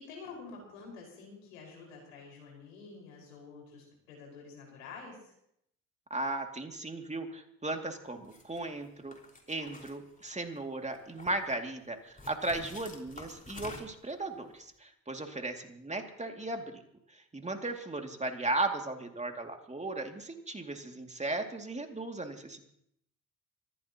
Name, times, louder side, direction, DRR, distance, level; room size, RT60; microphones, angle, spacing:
voice 1, 0.0-5.2, left 4 dB, 85° left, -1 dB, 5.4 m, -48 dB
voice 2, 6.1-9.2 9.5-16.8 17.1-22.6, right 2 dB, 20° right, 4 dB, 2.5 m, -36 dB
sound 1, 8.2-8.6 9.1-10.6 10.9-11.5 12.2-14.1, left 3 dB, 20° left, 4.9 m, -48 dB
25.0 x 15.5 x 3.0 m, 0.73 s
hypercardioid pair, 55°, 38 cm